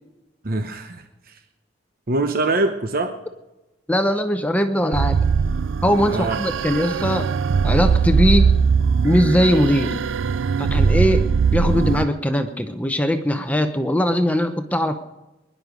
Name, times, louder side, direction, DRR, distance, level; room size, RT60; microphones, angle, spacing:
voice 1, 0.4-1.4 2.1-3.1 6.1-6.4, right 2 dB, 50° right, 6 dB, 0.9 m, -23 dB
voice 2, 3.9-5.3 5.8-7.3 7.6-8.5 9.0-10.0 10.6-15.0, equal, 10° left, 7 dB, 0.7 m, -20 dB
sound 1, 4.9-12.1, right 5 dB, 85° right, 0.4 m, -20 dB
22.0 x 11.0 x 5.2 m, 1.0 s
head